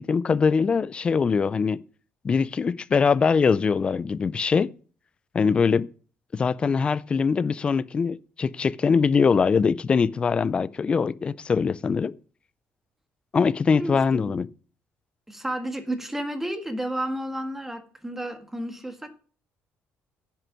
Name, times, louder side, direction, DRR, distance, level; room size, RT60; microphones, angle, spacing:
voice 1, 0.0-1.8 2.2-4.7 5.3-5.9 6.3-12.1 13.3-14.5, left 5 dB, 25° left, 0.4 m, -22 dB
voice 2, 13.7-14.4 15.3-19.1, right 1 dB, 5° right, 1.6 m, -32 dB
10.5 x 7.7 x 6.0 m
cardioid pair, 155°, 4 cm